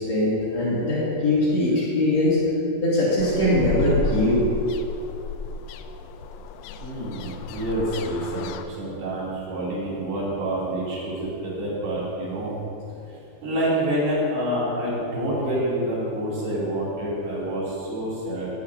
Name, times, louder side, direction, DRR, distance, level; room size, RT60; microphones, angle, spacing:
voice 1, 0.0-2.4 2.8-4.4, left 1 dB, 45° left, -11 dB, 3.1 m, -21 dB
sound 1, 3.2-8.6, left 3 dB, 85° left, 2.6 m, -32 dB
voice 2, 6.8-12.6 13.1-18.5, right 1 dB, 75° right, -8 dB, 4.9 m, -27 dB
19.0 x 9.6 x 2.7 m, 2.7 s
omnidirectional pair, 4.6 m